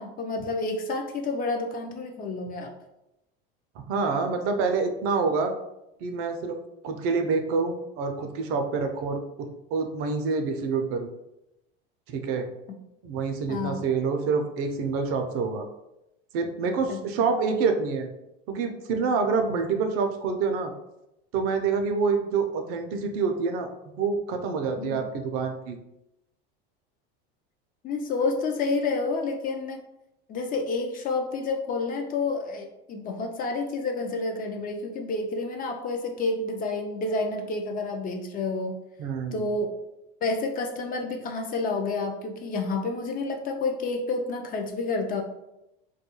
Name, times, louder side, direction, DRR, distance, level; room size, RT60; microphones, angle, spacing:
voice 1, 0.0-2.7 13.5-13.8 16.9-17.0 24.8-24.9 27.8-29.8 30.3-38.8 39.3-39.7 40.2-45.2, left 3 dB, 30° left, 3 dB, 0.4 m, -29 dB
voice 2, 3.8-5.5 6.0-6.6 6.8-9.2 9.7-11.1 12.1-12.5 13.0-15.7 16.3-18.1 18.5-20.7 21.3-23.7 24.0-25.8 39.0-39.5, right 4 dB, 50° right, 5 dB, 0.5 m, -27 dB
2.3 x 2.2 x 2.9 m, 0.89 s
hypercardioid pair, 90°, 29 cm